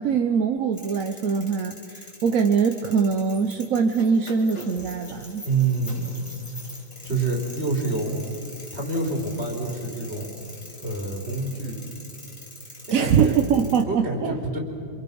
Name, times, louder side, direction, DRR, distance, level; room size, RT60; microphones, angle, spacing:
voice 1, 0.0-5.4 12.9-14.3, right 6 dB, 55° right, 6 dB, 1.1 m, -22 dB
sound 1, 0.7-13.8, left 1 dB, 15° left, 2.8 m, -43 dB
voice 2, 5.4-6.2 7.0-8.3 8.7-10.3 10.8-11.8 13.0-13.4 13.8-14.6, right 3 dB, 30° right, 1 dB, 3.6 m, -27 dB
28.5 x 26.5 x 5.4 m, 2.5 s
omnidirectional pair, 2.1 m